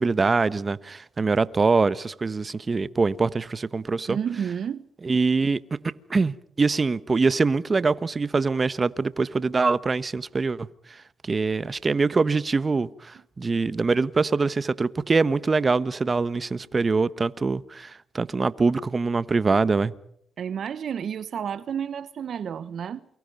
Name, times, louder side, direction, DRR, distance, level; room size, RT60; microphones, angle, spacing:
voice 1, 0.0-4.2 5.0-5.6 6.1-11.0 11.2-19.9, right 4 dB, 35° right, 1.1 m, -24 dB
voice 2, 4.1-4.9 20.4-23.0, right 8 dB, 65° right, 0.9 m, -31 dB
29.0 x 24.5 x 5.4 m
supercardioid pair, 55°, 0 cm